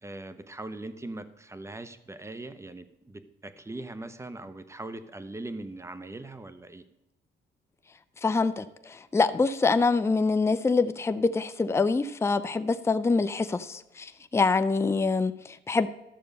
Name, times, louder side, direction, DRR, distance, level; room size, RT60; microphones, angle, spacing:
voice 1, 0.0-6.8, right 2 dB, 15° right, 11 dB, 0.9 m, -40 dB
voice 2, 8.2-15.9, left 4 dB, 15° left, 11 dB, 0.5 m, -25 dB
13.0 x 6.6 x 5.4 m, 0.94 s
cardioid pair, 90°, 20 cm